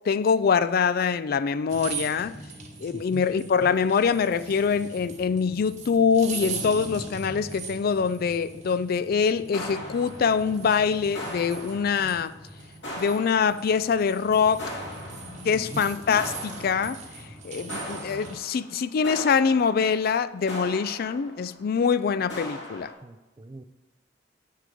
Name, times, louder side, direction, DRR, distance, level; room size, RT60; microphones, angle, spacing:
voice 1, 0.1-2.4 2.8-12.3 13.0-14.7 15.4-17.0 17.4-22.9, left 6 dB, 55° left, 0.4 m, -24 dB
sound 1, 1.7-18.4, right 4 dB, 40° right, 1.2 m, -40 dB
voice 2, 2.9-3.3 15.5-15.8 23.0-23.6, right 2 dB, 25° right, 0.4 m, -41 dB
sound 2, 9.5-10.8 11.1-12.4 12.8-14.0 14.6-15.8 16.1-17.3 17.7-21.7 22.3-22.9, equal, 75° left, 2.5 m, -39 dB
7.7 x 6.6 x 5.1 m
head